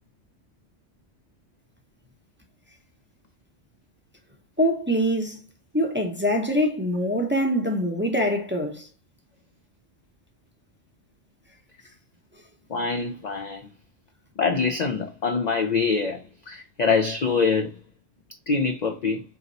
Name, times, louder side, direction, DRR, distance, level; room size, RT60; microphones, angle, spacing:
voice 1, 4.6-5.4 5.7-8.9, equal, 10° right, 0.6 m, -24 dB
voice 2, 12.7-13.7 14.4-16.2 16.5-17.7 18.5-19.2, left 4 dB, 65° left, 0.4 m, -24 dB
3.9 x 2.9 x 3.9 m
omnidirectional pair, 1.2 m